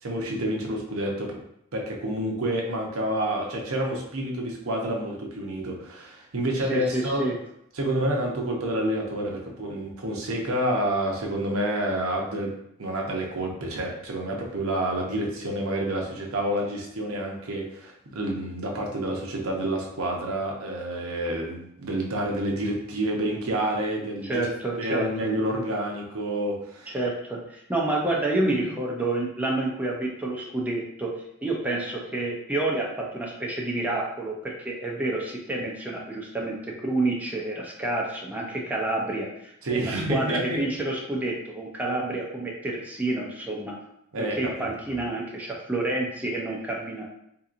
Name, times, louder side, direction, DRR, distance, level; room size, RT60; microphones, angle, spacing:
voice 1, 0.0-1.4 1.7-7.2 7.7-12.5 12.8-24.5 24.8-27.0 39.6-40.6 44.1-44.5, right 1 dB, 80° right, 0 dB, 0.7 m, -28 dB
voice 2, 6.7-7.4 24.2-25.0 26.9-31.1 31.4-43.7 44.4-47.0, right 2 dB, 10° right, -3 dB, 0.5 m, -29 dB
3.7 x 2.8 x 2.5 m, 0.75 s
head